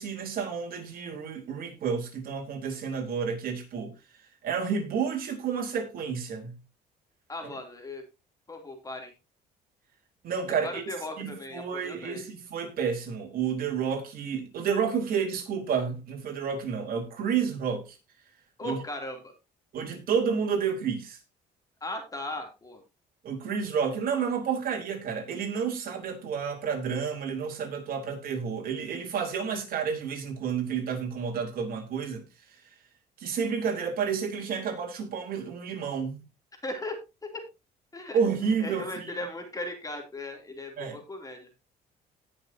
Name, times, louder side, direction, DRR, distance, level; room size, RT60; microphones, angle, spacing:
voice 1, 0.0-3.9 4.4-6.5 10.2-10.8 11.2-18.0 18.6-18.8 19.7-21.2 23.2-32.3 33.2-36.3 38.1-39.0 40.8-41.0, right 6 dB, 60° right, 3.9 m, -30 dB
voice 2, 7.3-8.0 8.5-9.1 10.6-12.3 18.6-19.3 21.8-22.8 36.6-37.4 37.9-41.5, left 2 dB, 20° left, 3.0 m, -38 dB
18.5 x 6.6 x 2.8 m
cardioid pair, 110°, 17 cm